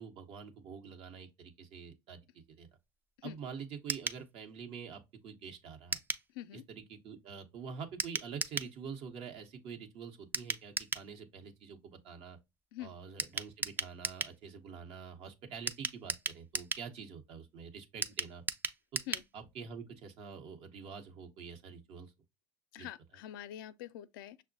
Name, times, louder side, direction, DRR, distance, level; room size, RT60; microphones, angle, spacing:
voice 1, 0.0-2.2 2.5-2.7 3.2-6.0 6.5-12.4 12.8-18.4 18.9-19.0 19.3-22.1 22.8-22.9, right 6 dB, 60° right, 0.9 m, -46 dB
sound 1, 3.9-4.2 5.9-6.3 8.0-8.7 10.3-11.1 13.2-14.4 15.7-16.9 18.0-19.3 19.6-19.7 19.9-20.0, right 4 dB, 15° right, 0.3 m, -36 dB
voice 2, 22.7-24.4, left 12 dB, 80° left, 0.4 m, -45 dB
6.0 x 2.1 x 2.5 m
hypercardioid pair, 80°, 11 cm